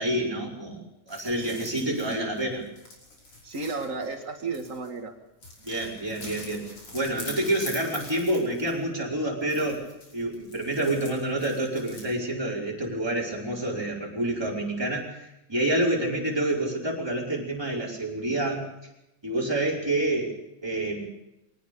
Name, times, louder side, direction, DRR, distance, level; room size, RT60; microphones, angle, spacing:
voice 1, 0.0-2.6 5.6-6.7 6.9-9.8 10.1-18.7 19.2-20.4 20.6-21.1, right 1 dB, 10° right, -3 dB, 4.9 m, -28 dB
sound 1, 1.1-5.0 5.4-8.9 9.4-12.1, left 2 dB, 50° left, 6.3 m, -44 dB
voice 2, 1.8-2.2 3.4-5.1, right 3 dB, 30° right, 5 dB, 1.8 m, -33 dB
22.5 x 18.5 x 6.9 m, 0.90 s
omnidirectional pair, 3.3 m